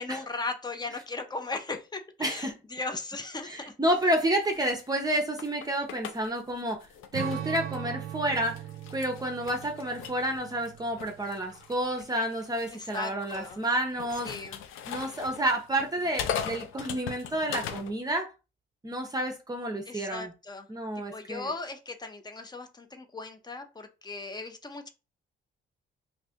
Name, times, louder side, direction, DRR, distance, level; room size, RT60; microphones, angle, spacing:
voice 1, 0.0-3.7 12.7-13.6 14.2-14.6 19.9-20.7 21.1-24.9, left 3 dB, 20° left, 0.6 m, -37 dB
voice 2, 2.2-2.5 3.4-6.8 7.1-8.6 8.9-14.3 14.9-18.3 18.8-20.3 20.7-21.5, right 1 dB, 20° right, 0.6 m, -30 dB
sound 1, 3.9-7.9 8.3-17.9, left 8 dB, 85° left, 0.4 m, -40 dB
Strum, 7.1-11.8, right 10 dB, 85° right, 0.5 m, -39 dB
2.6 x 2.4 x 3.5 m
cardioid pair, 90°, 20 cm